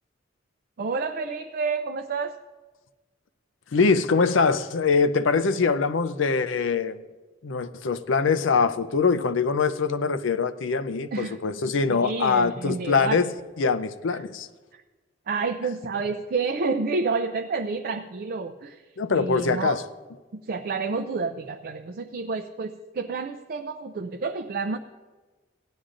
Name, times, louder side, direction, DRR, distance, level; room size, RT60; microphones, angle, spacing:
voice 1, 0.8-2.3 11.1-11.6 11.9-13.2 14.1-14.2 14.7-14.8 15.3-18.8 19.1-19.8 20.3-24.8, right 4 dB, 50° right, 0.4 m, -29 dB
voice 2, 3.7-7.0 7.4-13.3 13.6-14.5 19.0-19.8, left 4 dB, 80° left, 0.5 m, -23 dB
17.0 x 11.5 x 2.5 m
head